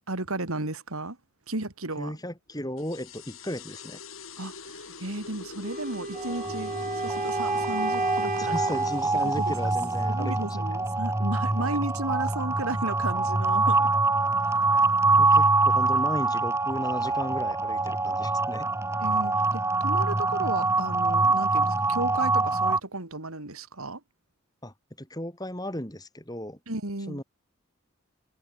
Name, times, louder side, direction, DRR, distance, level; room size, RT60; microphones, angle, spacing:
voice 1, 0.1-1.2 1.5-2.1 4.4-6.8 7.0-8.5 9.2-9.5 10.1-13.9 19.0-24.0 26.7-27.2, right 2 dB, 90° right, 3.3 m, -34 dB
voice 2, 2.0-4.0 8.4-10.6 11.6-11.8 15.2-18.7 24.6-26.6 27.1-27.2, equal, 15° left, 7.0 m, -35 dB
sound 1, 2.8-13.8, left 4 dB, 75° left, 7.1 m, -46 dB
Wind instrument woodwind instrument, 5.6-9.1, right 2 dB, 40° right, 6.2 m, -34 dB
sound 2, 6.2-22.8, right 3 dB, 15° right, 0.7 m, -25 dB
head